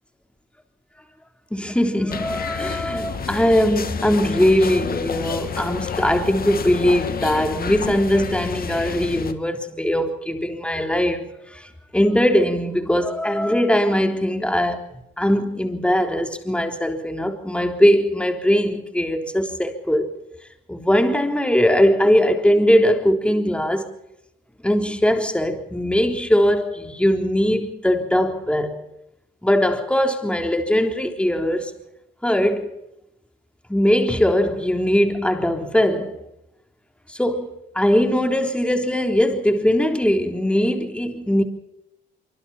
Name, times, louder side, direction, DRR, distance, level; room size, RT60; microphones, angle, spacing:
voice 1, 1.5-14.8 15.2-20.2 20.7-23.9 24.6-28.8 29.4-31.7 32.2-32.7 33.7-36.2 37.1-41.4, equal, 5° left, 3.6 m, -20 dB
sound 1, 2.1-9.3, left 6 dB, 50° left, 2.2 m, -29 dB
25.0 x 24.5 x 4.3 m
cardioid pair, 90°, 20 cm